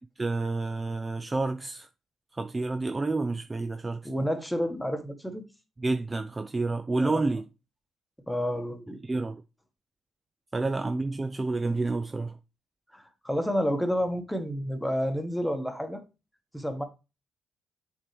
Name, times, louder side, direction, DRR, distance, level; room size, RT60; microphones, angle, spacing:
voice 1, 0.2-1.9 2.3-4.1 5.8-7.4 9.0-9.4 10.5-12.4, right 3 dB, 25° right, 0.4 m, -29 dB
voice 2, 4.0-5.4 7.0-7.3 8.3-9.0 12.9-16.0 16.5-16.8, equal, 5° left, 1.4 m, -30 dB
7.2 x 4.5 x 3.4 m
cardioid pair, 90°, 0 cm